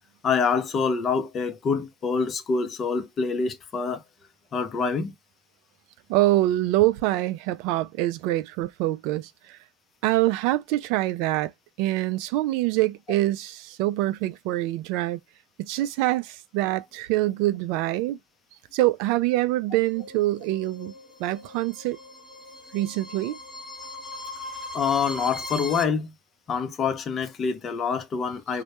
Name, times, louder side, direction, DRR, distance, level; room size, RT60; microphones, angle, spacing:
voice 1, 0.2-4.0 4.5-5.1 24.7-26.1 26.5-28.6, left 5 dB, 35° left, 0.5 m, -26 dB
voice 2, 6.1-9.6 10.0-11.5 11.8-15.2 15.6-18.2 18.7-20.9 21.2-22.0 22.7-23.4, right 16 dB, 65° right, 0.3 m, -25 dB
sound 1, 19.8-25.8, left 2 dB, 5° left, 0.9 m, -39 dB
2.1 x 2.1 x 2.8 m
hypercardioid pair, 95°, 0 cm